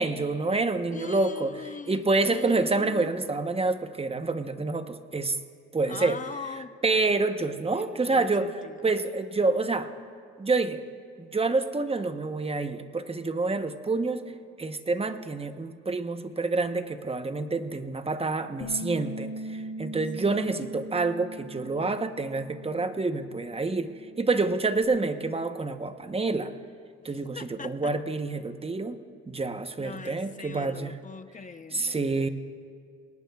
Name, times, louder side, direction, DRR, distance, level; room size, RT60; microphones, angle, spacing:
voice 1, 0.0-1.5 1.9-5.4 5.7-6.2 6.8-8.5 8.8-9.9 10.4-10.8 11.2-14.2 14.6-23.9 24.2-26.5 27.0-29.0 29.3-30.9 31.7-32.3, right 3 dB, 20° right, 9 dB, 0.9 m, -27 dB
voice 2, 0.9-3.1 5.9-6.7 7.8-8.9 20.2-20.5 27.0-27.9 29.8-32.3, left 5 dB, 25° left, 10 dB, 0.8 m, -41 dB
Bass guitar, 18.6-24.9, equal, 80° left, 2.6 m, -41 dB
28.5 x 19.0 x 2.4 m, 2.3 s
cardioid pair, 90°, 30 cm